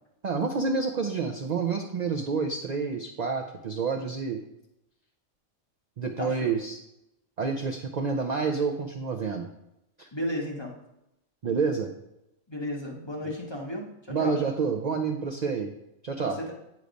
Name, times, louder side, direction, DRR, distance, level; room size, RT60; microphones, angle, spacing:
voice 1, 0.2-4.4 6.0-6.8 7.4-9.5 10.0-10.1 11.4-11.9 14.1-15.7 16.0-16.4, right 5 dB, 60° right, 4 dB, 0.4 m, -28 dB
voice 2, 6.2-6.5 10.1-10.8 12.5-14.4 16.2-16.5, left 1 dB, 25° left, -1 dB, 0.8 m, -34 dB
8.2 x 3.1 x 5.1 m, 0.86 s
omnidirectional pair, 1.4 m